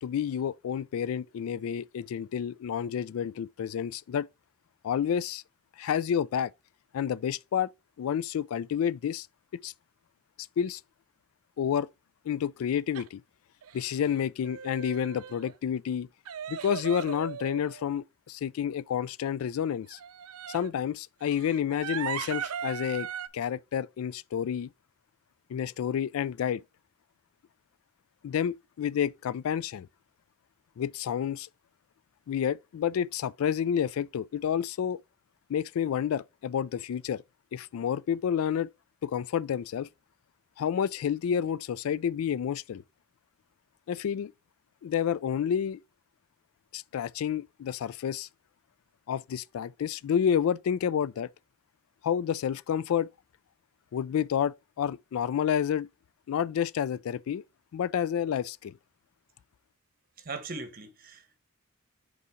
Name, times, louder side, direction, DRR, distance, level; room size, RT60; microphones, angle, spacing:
voice 1, 0.0-4.3 4.8-5.4 5.8-6.5 6.9-7.7 8.0-9.3 9.6-9.7 10.6-10.8 11.6-11.9 12.3-13.2 13.7-16.1 16.5-20.0 20.5-23.1 23.3-24.7 25.5-26.6 28.2-29.9 30.8-31.5 32.3-35.0 35.5-37.2 37.5-38.7 39.0-39.9 40.6-42.8 43.9-44.3 44.8-45.8 46.7-48.3 49.1-51.3 52.0-53.1 53.9-55.9 56.3-57.4 57.7-58.8, left 8 dB, 75° left, 0.3 m, -29 dB
sound 1, 12.9-13.1 13.6-14.1 14.4-15.5 16.3-18.0 19.9-20.7 21.2-23.3, right 8 dB, 85° right, 0.5 m, -38 dB
voice 2, 60.2-61.4, right 3 dB, 40° right, 1.2 m, -40 dB
5.5 x 4.0 x 4.8 m
head